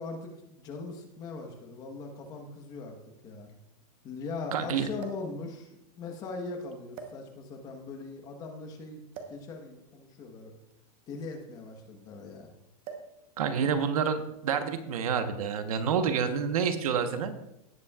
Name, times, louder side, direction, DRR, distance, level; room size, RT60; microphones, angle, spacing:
voice 1, 0.0-3.0 3.2-3.5 4.0-9.0 9.3-10.5 11.1-12.5, left 3 dB, 20° left, 3 dB, 1.2 m, -40 dB
sound 1, 1.2-1.3 2.4-2.5 2.8-2.9 5.0-5.4 6.2-6.4 6.9-7.6 9.1-9.5 10.6-12.2 12.8-13.2 13.5-13.7 14.5-14.9 15.8-16.1, right 5 dB, 25° right, 1.0 m, -46 dB
voice 2, 4.5-4.9 13.4-17.3, right 7 dB, 65° right, 8 dB, 1.2 m, -28 dB
17.5 x 8.3 x 2.4 m, 0.83 s
supercardioid pair, 170°, 20 cm